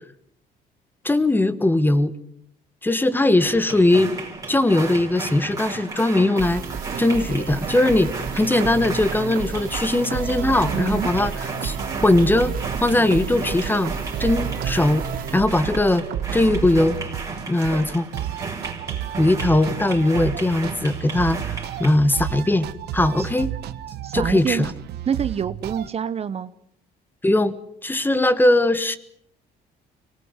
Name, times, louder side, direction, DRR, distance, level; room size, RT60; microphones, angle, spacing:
voice 1, 1.0-2.1 2.8-4.1 4.5-6.6 7.0-11.8 12.0-13.9 14.2-15.0 15.3-16.0 16.3-17.0 17.5-18.1 19.2-22.7 22.9-23.5 24.1-24.7 27.2-27.5 27.8-29.0, left 2 dB, 10° left, 14 dB, 1.4 m, -20 dB
sound 1, 3.4-21.9, right 4 dB, 20° right, 5.3 m, -35 dB
sound 2, 6.4-16.9, right 6 dB, 55° right, 3.2 m, -32 dB
sound 3, 10.1-25.9, right 12 dB, 75° right, 1.3 m, -32 dB
voice 2, 10.7-11.1 23.2-23.3 24.0-24.7 25.1-26.5, right 7 dB, 40° right, 14 dB, 0.9 m, -26 dB
24.5 x 19.0 x 8.1 m, 0.69 s
cardioid pair, 110°, 17 cm